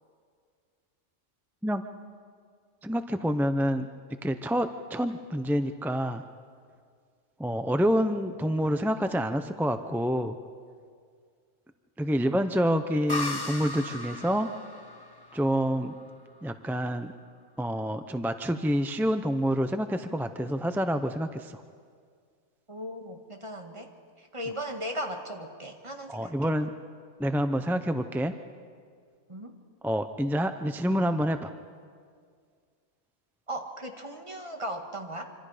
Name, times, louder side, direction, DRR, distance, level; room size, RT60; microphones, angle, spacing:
voice 1, 2.8-3.9 4.2-6.2 7.4-10.4 12.0-14.5 15.3-15.9 16.4-17.1 17.6-21.6 26.1-26.7 27.2-28.3 29.8-31.5, equal, 5° right, 8 dB, 0.4 m, -27 dB
sound 1, 13.1-16.6, left 2 dB, 20° left, 1.0 m, -37 dB
voice 2, 22.7-23.9 24.2-26.6 29.3-29.6 33.5-35.2, equal, 25° right, 3 dB, 1.9 m, -37 dB
26.0 x 26.0 x 5.0 m, 2.1 s
omnidirectional pair, 1.2 m